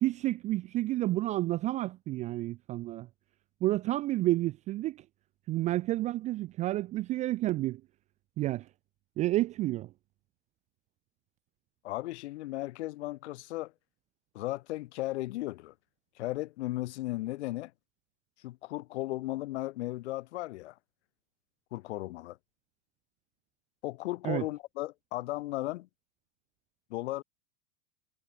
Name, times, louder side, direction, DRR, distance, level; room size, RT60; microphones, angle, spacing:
voice 1, 0.0-3.1 3.6-5.0 5.5-7.8 8.4-8.7 9.2-9.9 24.2-24.4, right 16 dB, 20° right, 0.3 m, -30 dB
voice 2, 11.8-13.7 14.3-15.7 16.2-17.7 18.4-20.7 21.7-22.4 23.8-25.9 26.9-27.2, left 17 dB, 65° left, 3.0 m, -35 dB
supercardioid pair, 130°, 36 cm